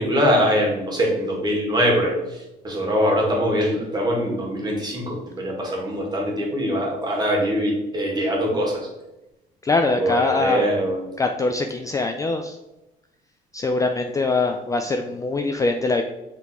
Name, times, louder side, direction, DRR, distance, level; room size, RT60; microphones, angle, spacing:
voice 1, 0.0-8.9 10.0-11.0, equal, 25° right, -1 dB, 2.0 m, -23 dB
voice 2, 9.6-10.6 11.2-12.6 13.5-16.0, left 3 dB, 20° left, 5 dB, 0.4 m, -23 dB
5.9 x 3.8 x 4.3 m, 0.97 s
cardioid pair, 110°, 17 cm